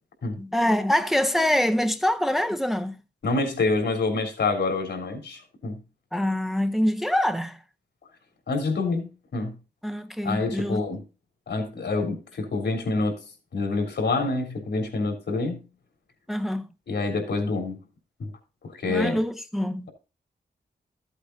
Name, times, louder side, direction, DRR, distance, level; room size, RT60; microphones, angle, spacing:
voice 1, 0.4-3.0 6.1-7.6 9.8-10.8 16.3-16.7 18.9-19.9, left 1 dB, ahead, 0.7 m, -25 dB
voice 2, 3.2-5.8 8.5-9.5 10.2-11.0 11.5-13.2 13.5-15.6 16.9-17.8 18.2-18.3 18.7-19.2, left 3 dB, 80° left, 3.4 m, -27 dB
14.5 x 8.2 x 2.7 m
wide cardioid pair, 160°, 18 cm